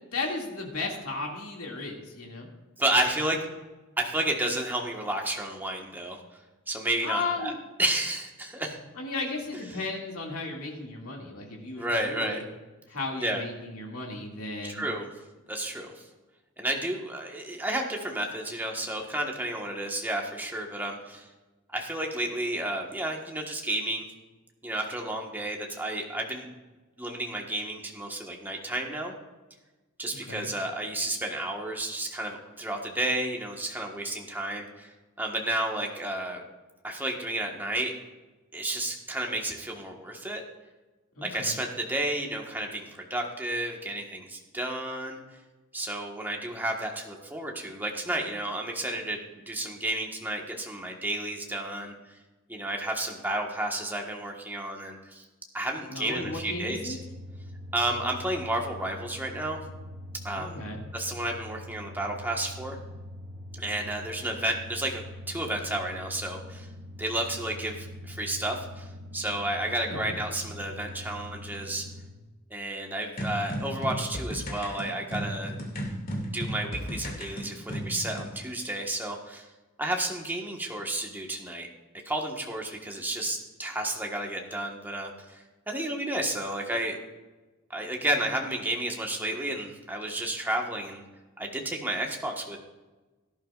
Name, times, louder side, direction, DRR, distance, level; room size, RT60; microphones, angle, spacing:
voice 1, 0.1-2.5 7.0-7.5 9.0-12.4 12.9-14.8 30.1-30.5 41.2-41.6 55.9-57.0 60.3-60.8 69.9-70.1, left 3 dB, 70° left, -1 dB, 2.4 m, -35 dB
voice 2, 2.8-3.4 4.0-6.2 6.7-7.5 7.8-8.8 11.8-12.4 13.2-13.4 14.6-15.1 15.5-16.0 16.6-21.3 21.7-24.1 24.6-26.5 27.0-29.2 30.0-34.9 35.2-36.4 36.8-37.9 38.5-40.4 41.2-45.2 45.7-49.2 49.5-51.9 52.5-55.2 55.5-57.0 57.7-59.6 60.2-60.6 60.9-62.8 63.5-65.0 65.3-66.7 67.0-68.9 69.1-71.8 72.5-75.5 76.3-79.5 79.8-81.7 82.0-87.0 87.7-91.0 91.4-92.6, right 1 dB, 10° right, 1 dB, 1.4 m, -31 dB
sound 1, 56.1-72.2, left 1 dB, 35° right, 1.9 m, -43 dB
sound 2, 73.2-78.3, equal, 40° left, 2.4 m, -34 dB
17.0 x 11.0 x 2.5 m, 1.2 s
head